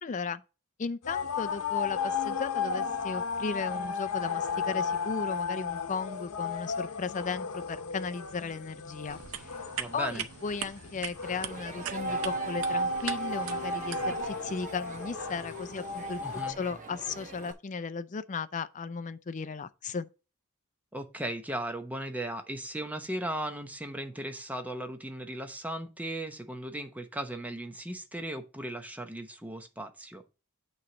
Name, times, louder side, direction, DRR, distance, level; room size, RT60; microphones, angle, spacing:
voice 1, 0.0-0.4 0.8-9.6 9.9-16.2 16.5-20.1, left 5 dB, 35° left, 0.5 m, -36 dB
sound 1, 1.0-16.5, left 4 dB, 85° left, 0.8 m, -34 dB
sound 2, 9.1-14.3, right 8 dB, 80° right, 0.7 m, -41 dB
voice 2, 9.8-10.2 16.2-16.6 20.9-30.2, right 1 dB, 5° right, 0.8 m, -37 dB
Crowd, 11.2-17.5, right 3 dB, 35° right, 1.0 m, -45 dB
8.6 x 3.2 x 6.0 m
head